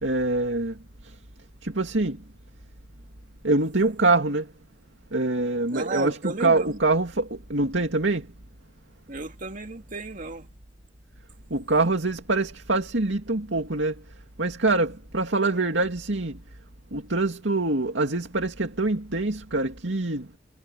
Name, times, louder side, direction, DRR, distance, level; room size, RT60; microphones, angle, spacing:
voice 1, 0.0-0.8 1.6-2.2 3.4-4.5 5.1-8.3 11.5-14.0 14.4-16.4 16.9-20.4, right 2 dB, 85° right, 2.4 m, -25 dB
voice 2, 5.7-6.8 9.1-10.5, right 3 dB, 45° right, 2.2 m, -33 dB
head